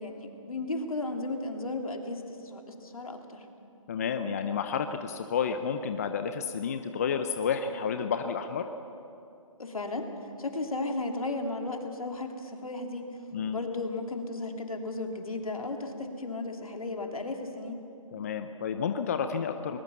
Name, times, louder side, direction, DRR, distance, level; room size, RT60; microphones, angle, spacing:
voice 1, 0.0-3.5 9.6-10.1 10.4-13.2 13.5-17.8, left 2 dB, 80° left, 3 dB, 3.0 m, -35 dB
voice 2, 3.9-8.6 13.3-13.6 18.1-19.8, left 6 dB, 25° left, 8 dB, 0.7 m, -30 dB
21.0 x 20.5 x 7.1 m, 2.7 s
figure-of-eight pair, 160°, 18 cm